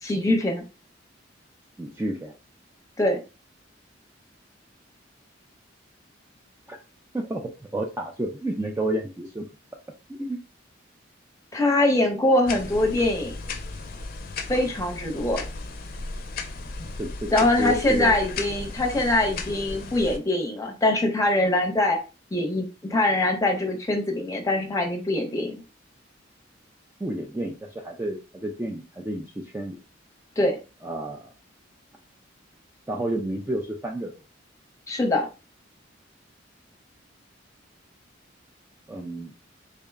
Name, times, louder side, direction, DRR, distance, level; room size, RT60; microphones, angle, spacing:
voice 1, 0.0-0.6 3.0-3.2 11.5-13.4 14.5-15.4 17.3-22.0 22.3-25.6 30.4-30.6 34.9-35.3, left 1 dB, 15° left, 2 dB, 0.7 m, -23 dB
voice 2, 1.8-2.3 6.7-6.8 7.1-9.5 10.1-10.4 17.0-17.3 17.6-18.2 27.0-29.8 30.8-31.3 32.9-34.1 38.9-39.3, right 1 dB, 10° right, 1 dB, 0.3 m, -30 dB
sound 1, 12.5-20.2, left 3 dB, 50° left, 0.5 m, -35 dB
3.7 x 2.1 x 3.4 m, 0.31 s
head